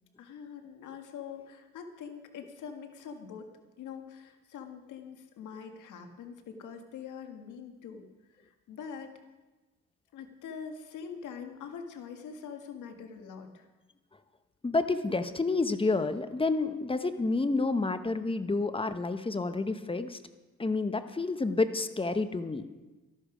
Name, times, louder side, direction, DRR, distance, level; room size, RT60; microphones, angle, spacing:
voice 1, 0.2-3.5 3.8-9.2 10.1-13.7, left 6 dB, 80° left, 5 dB, 1.7 m, -44 dB
voice 2, 14.6-20.2 20.6-22.7, left 3 dB, 20° left, 10 dB, 0.9 m, -29 dB
13.0 x 12.0 x 5.0 m, 1.2 s
cardioid pair, 90°, 30 cm